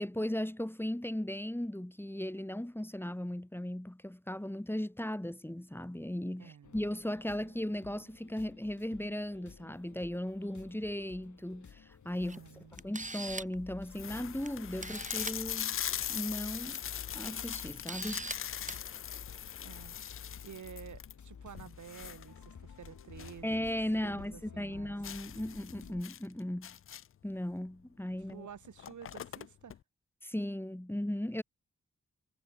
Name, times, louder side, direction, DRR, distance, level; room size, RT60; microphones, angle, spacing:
voice 1, 0.0-12.4 12.8-15.8 16.1-16.8 17.1-18.3 23.4-26.8 27.2-28.5 30.2-31.4, left 1 dB, 5° left, 1.6 m, -37 dB
voice 2, 6.4-6.8 12.2-12.8 19.6-19.9 20.4-23.6 24.0-24.9 28.3-29.8, right 8 dB, 75° right, 1.5 m, -50 dB
sound 1, 6.6-26.0, left 6 dB, 75° left, 5.6 m, -52 dB
sound 2, 12.1-12.6 13.2-13.3 13.5-13.6 13.9-23.5 23.8-23.9 24.3-24.4 25.0-27.3 28.2-28.3 28.6-29.8, left 10 dB, 45° left, 0.4 m, -41 dB
Camera, 12.3-12.4 12.8-13.6 14.5-14.6 14.8-15.4 16.5-16.8 17.2-17.3 17.9-18.4 18.7-18.8, right 2 dB, 25° right, 2.6 m, -40 dB
cardioid pair, 40°, 30 cm